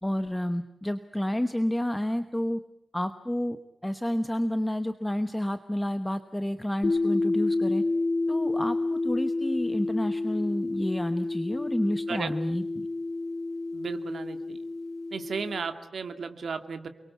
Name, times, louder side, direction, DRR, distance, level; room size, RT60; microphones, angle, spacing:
voice 1, 0.0-2.6 2.9-7.8 8.3-12.9, left 1 dB, 5° left, 9 dB, 1.1 m, -30 dB
sound 1, 6.8-15.7, left 2 dB, 45° left, 2.7 m, -29 dB
voice 2, 13.7-14.6 15.1-16.9, right 5 dB, 75° right, 8 dB, 2.3 m, -34 dB
29.5 x 23.0 x 8.3 m, 0.77 s
wide cardioid pair, 150°, 0 cm